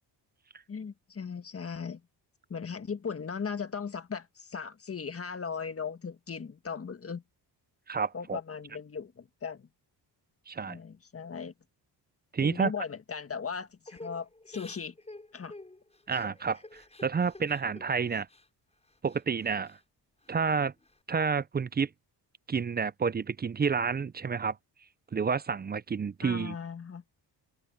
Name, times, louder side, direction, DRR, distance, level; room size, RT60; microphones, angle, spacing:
voice 1, 0.7-2.0 2.5-7.2 8.1-9.7 10.7-11.5 12.4-14.9 15.3-15.5 26.2-27.0, left 6 dB, 30° left, 1.6 m, -38 dB
voice 2, 7.9-8.4 10.5-10.8 12.3-12.7 16.1-18.3 19.0-19.8 20.3-20.7 21.1-21.9 22.5-24.6 25.1-26.6, right 5 dB, 25° right, 0.5 m, -29 dB
Crying sobbing / Breathing, 13.9-18.5 18.8-19.8 20.2-21.0, left 2 dB, 15° left, 6.2 m, -50 dB
open air
cardioid pair, 105°, 43 cm